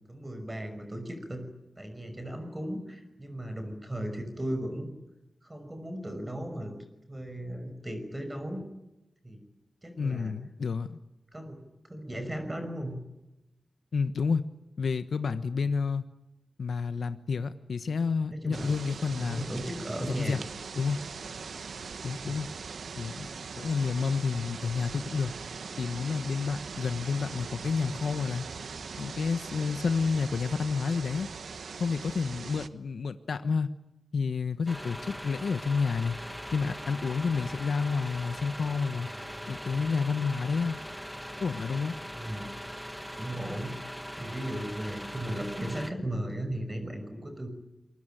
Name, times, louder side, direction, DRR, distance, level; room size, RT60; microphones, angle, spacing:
voice 1, 0.1-1.4 1.8-4.9 5.4-6.7 7.1-8.6 9.2-9.4 9.8-10.3 11.3-11.6 11.9-13.0 18.3-18.7 19.1-20.4 22.3-22.4 42.2-42.5 43.2-47.5, right 1 dB, 20° right, 6 dB, 5.9 m, -36 dB
voice 2, 10.0-11.0 13.9-14.4 14.8-16.0 16.6-19.4 20.2-20.4 20.7-21.0 22.0-22.5 23.0-23.3 23.6-25.3 25.8-28.4 29.0-31.3 31.8-33.7 34.1-36.2 36.5-39.1 39.5-40.8 41.4-42.0, left 5 dB, 85° left, 10 dB, 1.1 m, -30 dB
sound 1, 18.5-32.7, right 5 dB, 90° right, 1.3 m, -41 dB
sound 2, 34.7-45.9, equal, ahead, 1.6 m, -41 dB
27.0 x 22.5 x 9.2 m, 0.94 s
wide cardioid pair, 95°, 0 cm